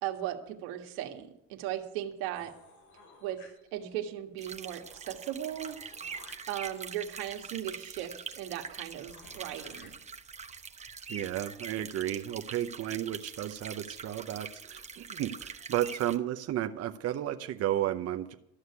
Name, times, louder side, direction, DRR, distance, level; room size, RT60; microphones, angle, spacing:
voice 1, 0.0-2.5 3.2-3.4 3.7-5.8 6.5-9.9, right 12 dB, 90° right, 4 dB, 1.6 m, -37 dB
sound 1, 2.3-4.0 4.4-4.5 4.7-9.9, left 3 dB, 70° left, 6.5 m, -58 dB
sound 2, 4.4-16.2, right 5 dB, 20° right, 0.9 m, -44 dB
voice 2, 11.1-18.3, right 12 dB, 45° right, 7 dB, 0.8 m, -33 dB
13.5 x 6.5 x 9.6 m, 0.79 s
cardioid pair, 115°, 34 cm